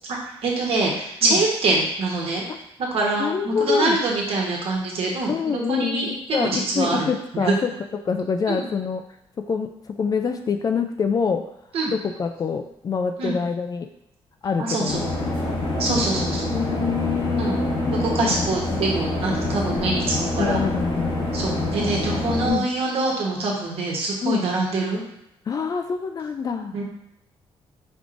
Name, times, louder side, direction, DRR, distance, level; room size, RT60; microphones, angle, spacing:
voice 1, 0.1-2.4 2.9-7.5 8.5-8.6 11.7-11.9 13.2-13.3 14.6-15.1 15.8-16.5 17.4-17.6 18.0-20.6 21.3-25.0 26.7-26.8, right 3 dB, 65° right, -2 dB, 1.2 m, -25 dB
voice 2, 3.2-4.0 5.3-7.7 8.0-9.0 9.5-11.4 11.9-13.9 14.4-15.0 16.5-18.8 20.4-21.1 22.5-22.7 24.2-24.5 25.5-26.8, left 5 dB, 35° left, 6 dB, 0.3 m, -26 dB
sound 1, 14.9-22.5, left 2 dB, 55° left, 1.1 m, -26 dB
5.1 x 3.1 x 2.5 m, 0.82 s
cardioid pair, 110°, 10 cm